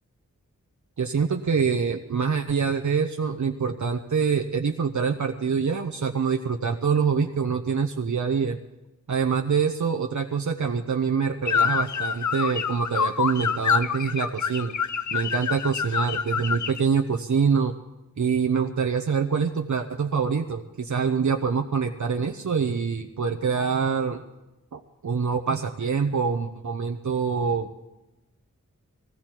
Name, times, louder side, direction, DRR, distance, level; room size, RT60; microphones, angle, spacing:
voice 1, 1.0-8.6 9.1-14.7 15.1-17.7 18.2-24.2 24.7-27.8, right 6 dB, 65° right, 4 dB, 0.9 m, -25 dB
sound 1, 11.5-16.8, left 7 dB, 65° left, 0.6 m, -26 dB
18.0 x 16.5 x 4.5 m, 1.0 s
cardioid pair, 45°, 32 cm